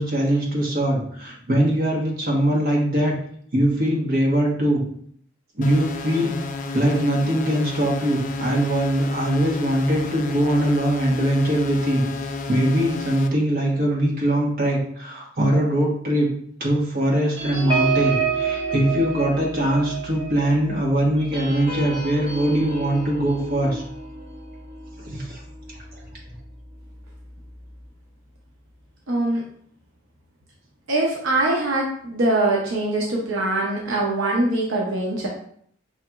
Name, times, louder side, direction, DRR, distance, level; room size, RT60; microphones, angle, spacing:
voice 1, 0.0-3.1 3.5-4.8 5.6-6.3 6.7-16.3 16.6-23.8 25.1-25.4, right 1 dB, 50° right, -3 dB, 1.1 m, -22 dB
sound 1, 5.6-13.3, left 3 dB, 40° left, 0.4 m, -31 dB
sound 2, 17.4-26.3 26.7-26.9 27.2-27.5, right 5 dB, 30° right, 1.2 m, -29 dB
voice 2, 29.1-29.4 30.9-35.3, right 2 dB, 80° right, -2 dB, 0.7 m, -22 dB
5.6 x 2.9 x 2.3 m, 0.62 s
head